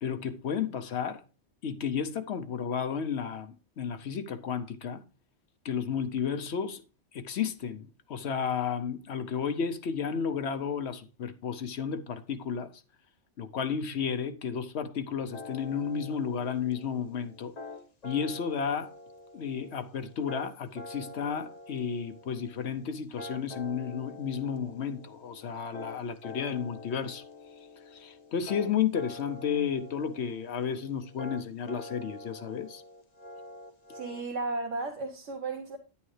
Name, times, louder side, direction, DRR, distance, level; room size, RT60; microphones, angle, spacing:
voice 1, 0.0-1.2 1.6-5.0 5.6-6.8 7.1-12.7 13.4-17.5 18.0-18.9 19.3-27.2 27.9-32.8, left 7 dB, 65° left, 0.9 m, -32 dB
sound 1, 15.3-34.2, left 2 dB, 35° left, 1.1 m, -46 dB
voice 2, 33.9-35.8, right 3 dB, 75° right, 1.4 m, -34 dB
10.0 x 8.5 x 3.2 m
omnidirectional pair, 1.3 m